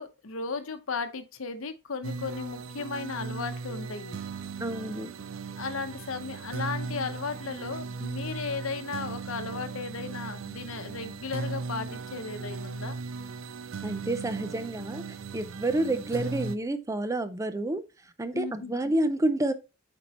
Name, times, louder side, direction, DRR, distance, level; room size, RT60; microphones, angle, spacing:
voice 1, 0.0-4.2 5.6-13.0 18.3-18.7, left 4 dB, 80° left, 0.8 m, -35 dB
sound 1, 2.0-16.6, right 4 dB, 70° right, 0.4 m, -37 dB
voice 2, 4.6-5.1 13.8-15.0 15.3-17.8 18.2-19.5, right 1 dB, 15° right, 0.5 m, -29 dB
8.2 x 4.5 x 2.9 m
head